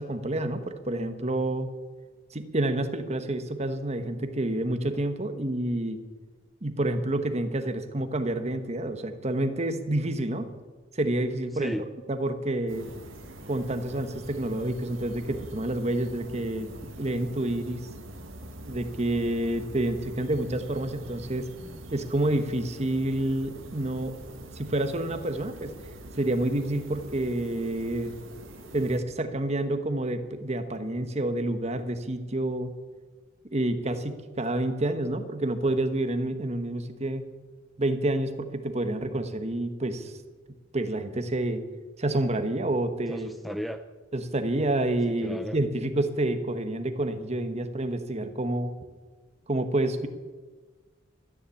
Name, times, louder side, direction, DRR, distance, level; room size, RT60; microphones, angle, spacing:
voice 1, 0.0-1.7 2.3-6.0 6.6-10.5 10.9-11.7 12.1-12.9 13.5-16.7 17.0-17.8 18.7-21.5 21.9-24.2 24.5-25.7 26.2-28.1 28.7-32.7 33.5-37.2 37.8-40.1 40.7-41.6 42.0-43.3 44.1-48.7 49.5-50.1, right 1 dB, 35° right, 8 dB, 1.2 m, -28 dB
voice 2, 11.5-11.9 21.6-21.8 43.1-43.8 45.1-45.6, equal, ahead, 9 dB, 0.4 m, -35 dB
sound 1, 12.7-29.0, right 1 dB, 85° right, 2.0 m, -44 dB
13.5 x 10.0 x 8.5 m, 1.4 s
head